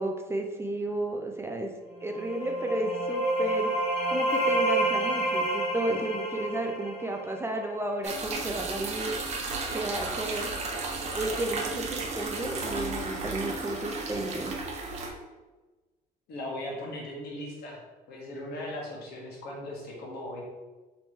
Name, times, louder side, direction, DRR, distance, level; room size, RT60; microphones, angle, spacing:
voice 1, 0.0-1.7 2.0-3.7 4.1-9.2 9.7-10.5 11.1-14.5, right 2 dB, 15° right, 3 dB, 0.4 m, -32 dB
sound 1, 2.0-7.7, right 1 dB, 40° left, 1.3 m, -29 dB
sound 2, 8.0-15.1, right 3 dB, 40° right, 0.8 m, -34 dB
voice 2, 16.3-17.8 18.1-20.4, left 1 dB, 75° left, -2 dB, 1.3 m, -38 dB
3.2 x 3.1 x 4.3 m, 1.2 s
cardioid pair, 110°, 17 cm